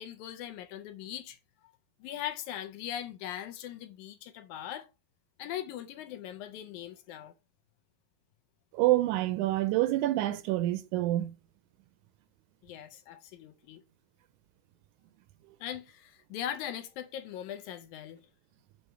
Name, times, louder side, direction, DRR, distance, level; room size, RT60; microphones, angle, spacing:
voice 1, 0.0-1.4 2.0-4.9 5.4-7.3 12.6-13.8 15.6-18.3, left 11 dB, 80° left, 1.8 m, -40 dB
voice 2, 8.7-11.3, right 16 dB, 80° right, 1.9 m, -27 dB
6.5 x 3.0 x 5.7 m
omnidirectional pair, 3.7 m